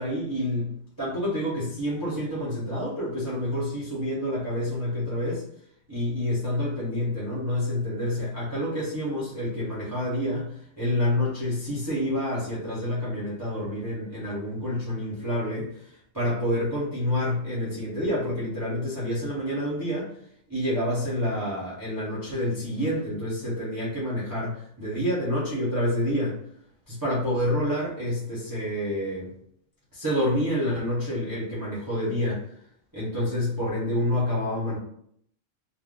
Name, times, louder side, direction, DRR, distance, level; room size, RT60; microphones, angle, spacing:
voice 1, 0.0-5.4 5.9-20.1 20.5-26.4 26.9-29.3 29.9-32.4 32.9-34.8, left 1 dB, 20° right, -9 dB, 0.9 m, -28 dB
2.6 x 2.2 x 3.6 m, 0.67 s
omnidirectional pair, 1.3 m